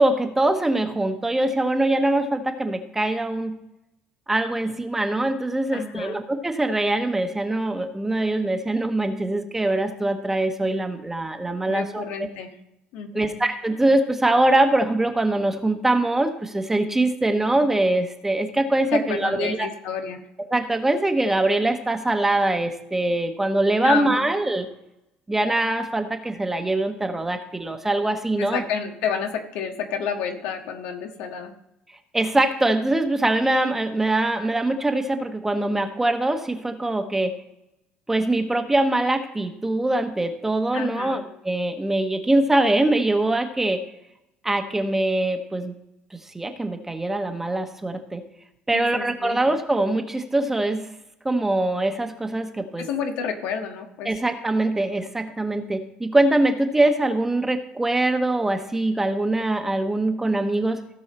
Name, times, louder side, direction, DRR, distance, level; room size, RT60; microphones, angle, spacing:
voice 1, 0.0-3.6 4.3-12.3 13.1-19.7 20.4-24.7 25.3-28.6 32.1-37.3 38.1-43.8 44.4-45.7 46.3-48.2 48.7-50.9 51.2-52.9 54.0-60.8, right 2 dB, 10° right, 6 dB, 1.1 m, -23 dB
voice 2, 5.7-6.2 11.6-12.6 12.9-13.3 18.9-20.2 23.8-24.3 28.4-31.5 40.7-41.2 48.7-49.4 52.8-54.1, left 7 dB, 80° left, 4 dB, 1.5 m, -30 dB
16.5 x 5.5 x 4.3 m, 0.86 s
cardioid pair, 110°, 3 cm